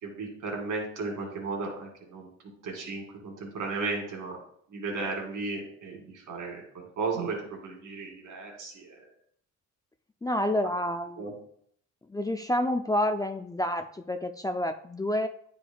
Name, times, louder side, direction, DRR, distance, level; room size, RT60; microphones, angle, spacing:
voice 1, 0.0-2.3 2.6-4.4 4.7-9.1 11.2-11.3, right 3 dB, 80° right, 0 dB, 2.4 m, -35 dB
voice 2, 10.2-11.3 12.1-15.3, left 1 dB, 10° left, 6 dB, 0.4 m, -29 dB
9.7 x 5.0 x 2.3 m, 0.65 s
cardioid pair, 90°, 30 cm